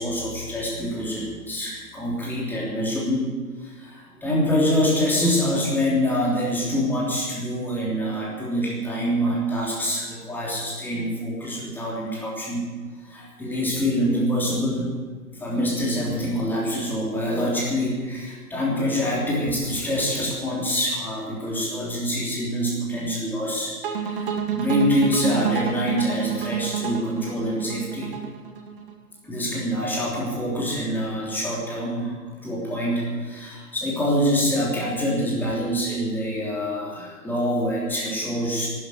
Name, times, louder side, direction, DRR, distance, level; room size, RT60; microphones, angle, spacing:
voice 1, 0.0-3.3 3.6-12.6 13.0-14.9 15.4-28.1 29.2-38.7, equal, 5° left, -4 dB, 3.2 m, -25 dB
sound 1, 23.8-28.9, right 7 dB, 35° right, 1.9 m, -28 dB
12.0 x 11.5 x 9.3 m, 1.5 s
figure-of-eight pair, 140°, 46 cm